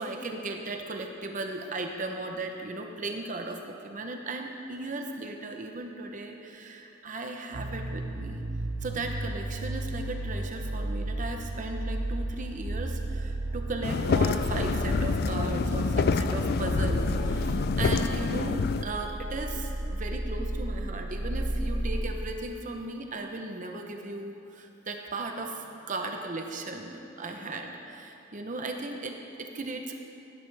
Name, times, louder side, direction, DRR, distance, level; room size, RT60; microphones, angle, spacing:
voice 1, 0.0-8.4 8.8-29.9, right 2 dB, 40° right, 3 dB, 0.7 m, -36 dB
sound 1, 7.5-22.0, right 1 dB, 85° right, 0.9 m, -33 dB
sound 2, 13.8-18.8, left 5 dB, 55° left, 0.4 m, -27 dB
16.0 x 10.0 x 3.4 m, 2.7 s
head